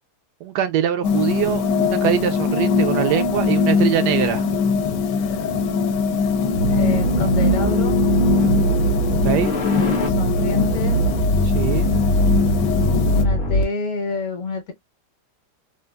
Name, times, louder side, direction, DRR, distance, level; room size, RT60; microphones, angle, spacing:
voice 1, 0.4-4.4 9.2-9.5 11.5-11.9, right 10 dB, 80° right, 1.2 m, -23 dB
sound 1, 1.0-13.2, left 4 dB, 85° left, 1.2 m, -21 dB
sound 2, 6.5-13.6, right 1 dB, 45° left, 0.7 m, -21 dB
voice 2, 6.7-8.0 9.8-11.0 13.0-14.7, left 4 dB, 60° left, 1.3 m, -27 dB
3.9 x 2.4 x 2.2 m
omnidirectional pair, 1.9 m